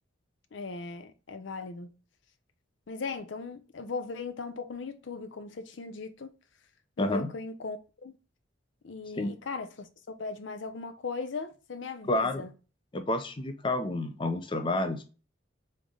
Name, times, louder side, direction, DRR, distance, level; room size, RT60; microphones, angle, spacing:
voice 1, 0.5-1.9 2.9-6.3 7.0-8.1 8.8-12.5, left 4 dB, 70° left, 0.5 m, -38 dB
voice 2, 7.0-7.3 9.1-9.3 12.1-12.5 12.9-15.0, left 2 dB, 25° left, 0.5 m, -29 dB
3.6 x 3.2 x 3.8 m
head